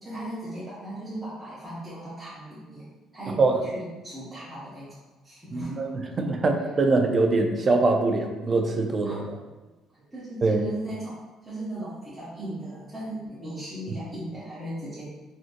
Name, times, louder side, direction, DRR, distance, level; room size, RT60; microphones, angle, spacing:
voice 1, 0.0-2.8 3.1-5.0 5.2-5.9 9.0-9.3 9.9-15.1, right 1 dB, 10° right, -11 dB, 0.8 m, -37 dB
voice 2, 5.5-9.2 10.4-10.7, right 3 dB, 25° right, 3 dB, 0.3 m, -23 dB
3.7 x 2.5 x 2.5 m, 1.1 s
cardioid pair, 170°, 0 cm